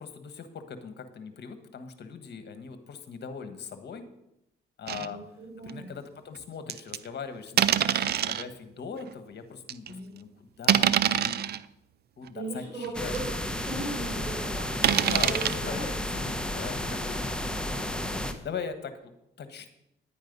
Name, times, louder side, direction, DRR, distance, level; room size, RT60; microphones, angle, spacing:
voice 1, 0.0-4.0 4.8-5.2 5.6-11.5 12.2-13.1 14.8-17.2 18.4-19.1 19.4-19.7, left 6 dB, 55° left, 9 dB, 1.6 m, -40 dB
sound 1, 4.9-5.1 5.6-5.7 6.7-7.0 7.6-8.4 9.1-9.2 9.7-9.9 10.6-11.6 12.3-12.4 12.8-12.9 13.1-13.2 14.8-15.5, right 10 dB, 55° right, 0.5 m, -24 dB
voice 2, 5.0-5.9 9.8-10.1 12.3-13.4 13.6-15.3 15.6-15.9 18.0-18.3, right 2 dB, 35° right, -5 dB, 5.1 m, -38 dB
sound 2, 12.9-18.3, left 1 dB, 5° left, 1.2 m, -32 dB
10.5 x 9.6 x 5.4 m, 0.84 s
cardioid pair, 90°, 20 cm